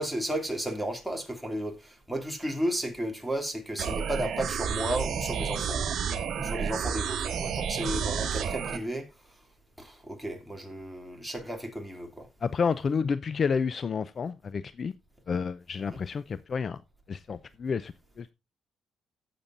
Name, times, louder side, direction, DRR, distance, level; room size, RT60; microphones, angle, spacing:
voice 1, 0.0-5.8 6.4-9.3 9.8-12.3 15.8-16.0, right 1 dB, ahead, 2.7 m, -34 dB
sound 1, 3.8-8.8, right 7 dB, 65° right, 1.6 m, -30 dB
voice 2, 12.4-14.9 15.3-16.8 17.1-17.9 18.2-18.3, left 5 dB, 45° left, 0.4 m, -30 dB
16.5 x 6.9 x 2.6 m
cardioid pair, 90°, 0 cm